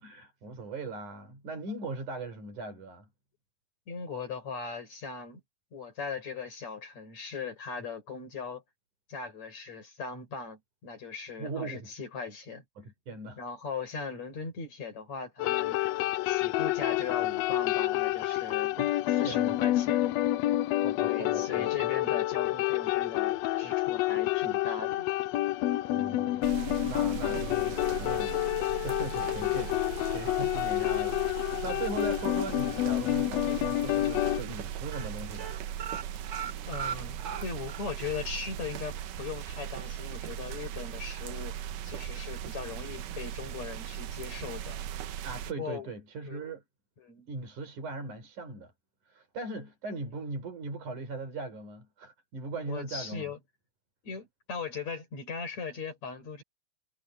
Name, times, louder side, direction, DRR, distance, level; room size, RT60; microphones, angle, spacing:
voice 1, 0.0-3.1 11.4-11.9 12.8-13.4 18.8-19.6 20.8-21.7 25.9-28.5 28.8-35.6 45.2-46.6 47.3-48.7 49.1-53.3, right 3 dB, 70° right, 6.5 m, -39 dB
voice 2, 3.9-5.4 5.7-8.6 9.1-12.6 13.4-15.8 16.3-18.8 19.1-20.1 21.0-25.1 36.7-41.6 41.8-44.8 45.6-45.9 46.3-46.4 47.0-47.3 52.7-53.4 54.0-56.4, left 5 dB, 60° left, 6.4 m, -39 dB
sound 1, 15.4-34.4, left 16 dB, 85° left, 1.5 m, -29 dB
sound 2, 26.4-45.5, right 10 dB, 85° right, 2.7 m, -39 dB
sound 3, 33.1-33.7 34.0-34.2 34.4-34.6 34.9-37.9 38.3-38.4 38.7-38.8, right 8 dB, 50° right, 1.5 m, -39 dB
omnidirectional pair, 3.6 m